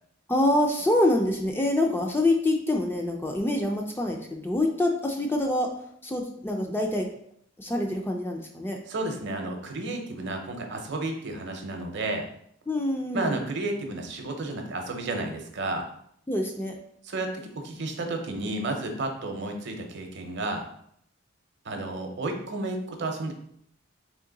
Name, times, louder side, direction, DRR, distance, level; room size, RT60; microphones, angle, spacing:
voice 1, 0.3-5.7 6.0-7.1 7.6-8.8 12.7-13.4 16.3-16.7, left 1 dB, 10° left, 2 dB, 0.3 m, -25 dB
voice 2, 8.9-12.3 13.1-15.8 17.0-17.3 17.5-20.7 21.6-23.3, right 2 dB, 55° right, 3 dB, 0.7 m, -32 dB
3.7 x 2.9 x 3.8 m, 0.68 s
head